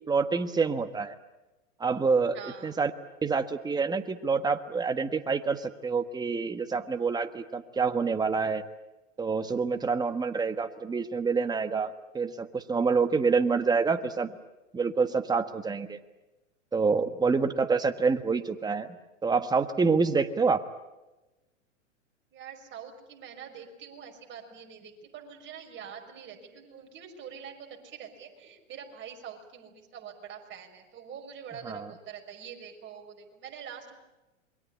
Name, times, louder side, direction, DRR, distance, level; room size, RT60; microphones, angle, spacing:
voice 1, 0.1-1.1 1.8-2.9 3.2-8.6 9.2-14.3 14.7-16.0 16.7-18.9 19.2-20.6 31.6-31.9, right 4 dB, 10° right, 8 dB, 1.4 m, -27 dB
voice 2, 2.3-2.7 22.3-34.0, right 7 dB, 30° right, 3 dB, 5.5 m, -45 dB
27.5 x 23.0 x 8.5 m, 1.0 s
hypercardioid pair, 120°, 38 cm